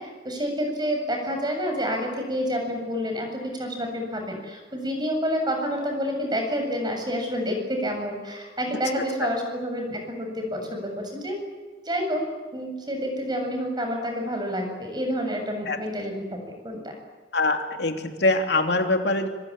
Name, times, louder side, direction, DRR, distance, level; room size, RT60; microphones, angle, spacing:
voice 1, 0.0-11.4 11.8-12.2 12.5-16.9, equal, 25° right, 3 dB, 7.6 m, -29 dB
voice 2, 17.3-19.3, left 2 dB, 70° left, 4 dB, 2.9 m, -23 dB
25.5 x 25.5 x 8.9 m, 1.3 s
head